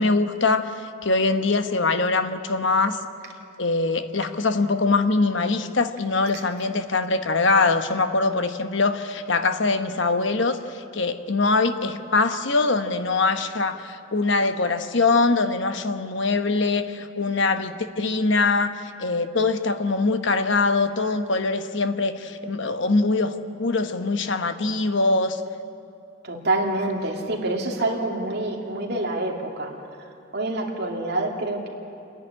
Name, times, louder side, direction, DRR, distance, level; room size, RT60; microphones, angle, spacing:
voice 1, 0.0-3.0 3.6-25.4, left 3 dB, 60° left, 9 dB, 1.1 m, -23 dB
voice 2, 26.2-29.7 30.3-31.7, right 2 dB, 50° right, 0 dB, 2.6 m, -26 dB
28.0 x 11.0 x 10.0 m, 2.7 s
head